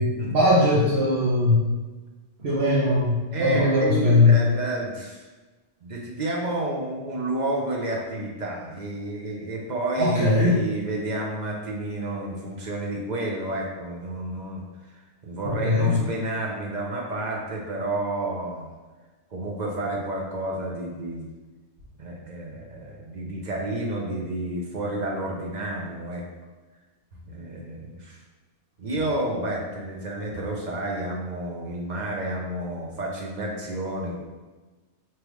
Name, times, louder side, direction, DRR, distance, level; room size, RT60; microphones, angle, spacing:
voice 1, 0.0-1.6 2.4-4.4 10.0-10.6 15.4-15.9, left 2 dB, 60° right, -8 dB, 1.2 m, -20 dB
voice 2, 3.3-5.2 5.8-14.6 15.0-18.7 19.3-21.3 22.0-26.2 27.2-28.2 28.8-34.2, right 1 dB, 45° right, -2 dB, 0.7 m, -30 dB
5.0 x 3.0 x 3.1 m, 1.2 s
omnidirectional pair, 1.2 m